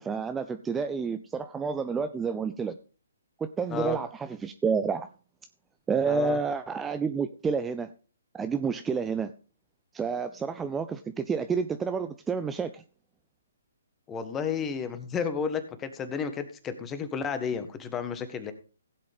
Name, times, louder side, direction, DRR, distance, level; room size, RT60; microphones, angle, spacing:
voice 1, 0.0-2.8 3.4-5.1 5.9-7.9 8.3-9.3 9.9-12.8, right 5 dB, 10° right, 9 dB, 0.5 m, -29 dB
voice 2, 6.1-6.4 14.1-18.5, left 6 dB, 15° left, 10 dB, 1.5 m, -32 dB
16.5 x 7.7 x 3.6 m, 0.37 s
hypercardioid pair, 140°, 0 cm